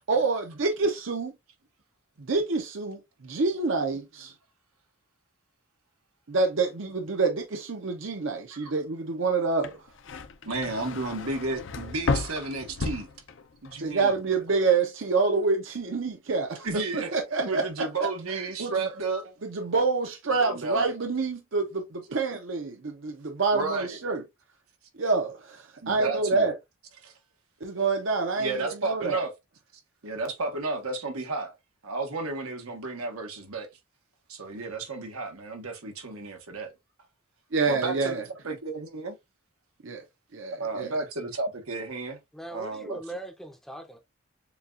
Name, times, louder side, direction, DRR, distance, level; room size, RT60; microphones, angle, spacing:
voice 1, 0.1-1.3 2.2-4.3 6.3-9.7 13.8-17.6 18.6-18.9 19.4-21.6 22.1-24.2 25.0-26.5 27.6-29.2 37.5-38.2 39.8-40.0 40.3-40.9, right 4 dB, 60° right, 0.7 m, -27 dB
sound 1, 9.5-13.8 14.1-14.7, left 3 dB, 55° left, 0.5 m, -33 dB
voice 2, 10.4-13.1 13.6-14.2 16.6-17.1 17.4-19.3 20.4-20.9 23.5-24.0 25.8-26.5 27.0-27.1 28.4-29.3 30.0-31.5 31.8-33.7 34.3-36.7 37.7-39.1 40.5-42.2 42.5-43.0, right 3 dB, 90° right, 1.3 m, -32 dB
voice 3, 42.3-44.0, right 1 dB, ahead, 0.6 m, -40 dB
6.9 x 2.3 x 2.5 m
head